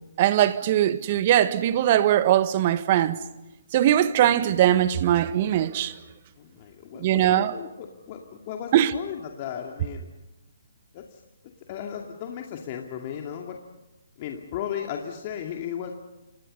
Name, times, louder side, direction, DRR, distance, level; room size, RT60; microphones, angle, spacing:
voice 1, 0.2-3.2 3.7-5.9 7.0-7.6 8.7-8.9, right 12 dB, 35° right, 1.6 m, -21 dB
voice 2, 6.4-7.7 8.1-10.1 10.9-11.2 11.7-13.6 14.2-16.0, left 9 dB, 35° left, 2.4 m, -35 dB
29.5 x 27.0 x 5.5 m
figure-of-eight pair, 140°, 0 cm